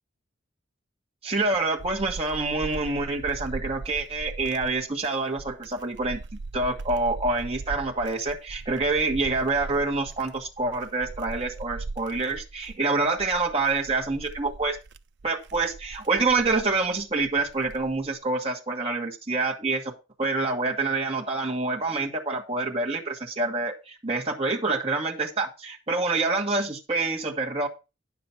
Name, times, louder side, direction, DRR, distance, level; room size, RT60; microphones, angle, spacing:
voice 1, 1.2-14.8 15.2-19.9 20.2-27.7, right 3 dB, 30° right, 0 dB, 1.5 m, -27 dB
sound 1, 1.3-18.2, right 3 dB, 60° right, 0.5 m, -40 dB
9.7 x 7.1 x 4.4 m, 0.29 s
head